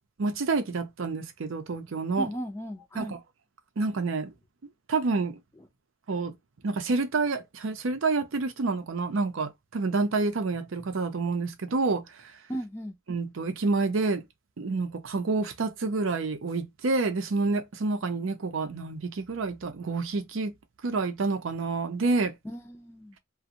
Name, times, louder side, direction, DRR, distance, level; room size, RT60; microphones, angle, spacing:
voice 1, 0.2-2.3 3.0-3.2 3.8-4.3 4.9-5.4 6.1-6.3 6.6-12.3 13.1-14.2 14.6-20.5 20.8-22.3, right 3 dB, 70° right, 0.6 m, -28 dB
voice 2, 2.2-3.1 12.5-13.0 22.4-23.2, right 1 dB, 10° left, 0.4 m, -36 dB
2.5 x 2.1 x 2.7 m
head